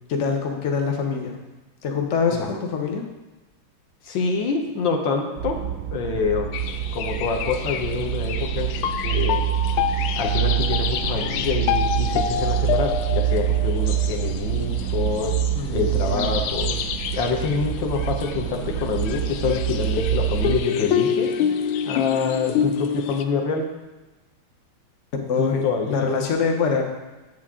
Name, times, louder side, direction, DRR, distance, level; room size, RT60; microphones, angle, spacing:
voice 1, 0.1-1.4 1.8-3.0 15.5-16.3 25.3-26.8, left 5 dB, 50° left, 2 dB, 0.9 m, -24 dB
voice 2, 4.0-5.6 5.9-6.6 6.9-8.7 9.0-9.4 10.2-15.4 15.7-16.8 17.1-21.3 21.8-23.6 25.4-25.9, left 5 dB, 65° left, 2 dB, 1.6 m, -26 dB
sound 1, 5.4-20.6, right 11 dB, 90° right, 0.8 m, -26 dB
sound 2, 6.5-23.2, left 8 dB, 90° left, 1.5 m, -28 dB
8.3 x 7.7 x 3.6 m, 1.1 s
omnidirectional pair, 2.3 m